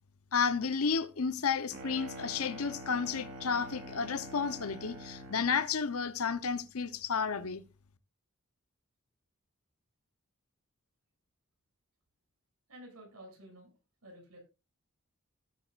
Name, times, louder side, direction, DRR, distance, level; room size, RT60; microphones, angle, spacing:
voice 1, 0.3-7.6, left 5 dB, 75° left, 0.8 m, -32 dB
sound 1, 1.7-5.6, right 1 dB, 70° right, 4.9 m, -46 dB
voice 2, 12.7-13.7 14.0-14.4, right 1 dB, 90° right, 6.6 m, -51 dB
17.5 x 9.0 x 2.4 m
head